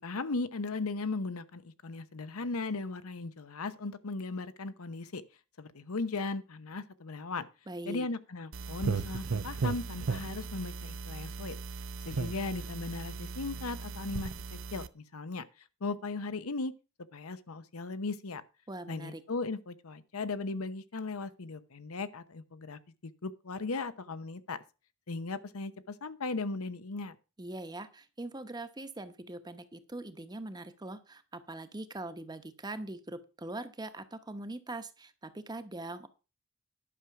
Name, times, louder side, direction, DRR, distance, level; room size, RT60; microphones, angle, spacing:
voice 1, 0.0-5.2 5.6-7.5 7.9-11.6 12.0-15.4 15.8-16.7 17.1-18.4 18.9-24.6 25.1-27.2, left 3 dB, 90° left, 0.9 m, -37 dB
voice 2, 7.7-8.1 18.7-19.2 27.4-36.1, right 2 dB, 20° right, 0.9 m, -42 dB
sound 1, 8.5-14.9, right 4 dB, 65° right, 0.7 m, -36 dB
11.0 x 6.3 x 5.8 m
head